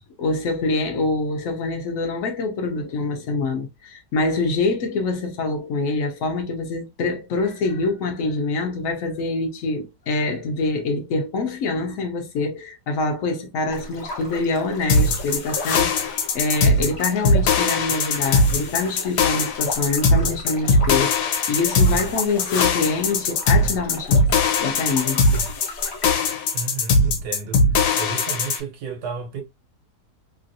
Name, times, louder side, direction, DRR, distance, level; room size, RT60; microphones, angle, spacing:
voice 1, 0.2-24.2 24.6-25.5, left 3 dB, 65° left, 1.0 m, -25 dB
sound 1, 13.7-26.3, left 3 dB, 35° left, 0.7 m, -37 dB
sound 2, 14.9-28.6, left 3 dB, 85° left, 1.3 m, -20 dB
voice 2, 26.5-27.6 28.0-29.4, right 5 dB, 70° right, 1.3 m, -32 dB
3.1 x 2.5 x 2.6 m
omnidirectional pair, 1.8 m